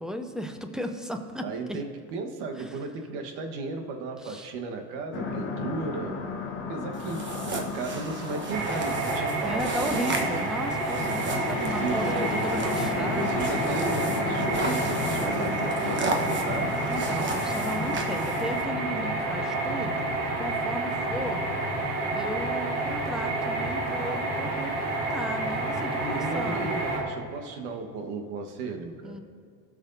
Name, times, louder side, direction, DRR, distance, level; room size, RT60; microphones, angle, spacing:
voice 1, 0.0-1.8 2.6-2.8 4.2-4.5 9.4-13.5 16.9-21.4 22.1-26.8 29.0-29.2, equal, ahead, 6 dB, 0.7 m, -35 dB
voice 2, 1.4-6.2 6.7-7.2 7.5-10.4 11.5-16.7 25.9-29.2, right 4 dB, 60° right, 4 dB, 1.4 m, -35 dB
sound 1, 5.1-22.5, left 5 dB, 25° left, 1.2 m, -35 dB
sound 2, 6.9-18.6, right 2 dB, 25° right, 1.2 m, -36 dB
sound 3, 8.5-27.0, right 2 dB, 80° right, 2.1 m, -29 dB
17.5 x 6.4 x 2.7 m, 2.3 s
hypercardioid pair, 90°, 46 cm